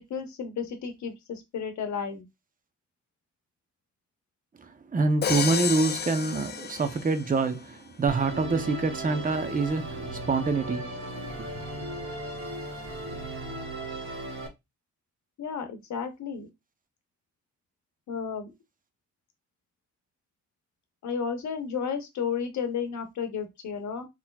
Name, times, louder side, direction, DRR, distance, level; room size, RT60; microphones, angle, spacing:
voice 1, 0.0-2.3 15.4-16.5 18.1-18.5 21.0-24.1, left 6 dB, 70° left, 1.0 m, -33 dB
voice 2, 4.6-11.5, right 3 dB, 30° right, 0.7 m, -26 dB
Crash cymbal, 5.2-7.4, left 7 dB, 35° left, 0.4 m, -31 dB
Musical instrument, 8.1-14.5, right 1 dB, 65° right, 1.9 m, -36 dB
3.9 x 3.0 x 2.3 m
cardioid pair, 70°, 30 cm